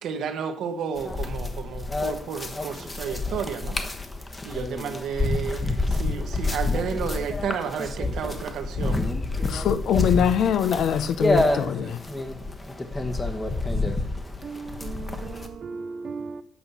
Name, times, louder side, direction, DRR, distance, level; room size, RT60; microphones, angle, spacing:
voice 1, 0.0-3.8 4.4-9.0 9.5-9.7, right 7 dB, 75° right, 1.2 m, -32 dB
sound 1, 1.0-15.5, left 2 dB, 20° left, 1.1 m, -28 dB
voice 2, 8.0-8.4 11.8-11.9 14.4-16.4, right 4 dB, 45° right, 0.5 m, -37 dB
voice 3, 9.4-12.0, left 8 dB, 75° left, 0.7 m, -23 dB
8.5 x 6.0 x 5.6 m
cardioid pair, 90°, 0 cm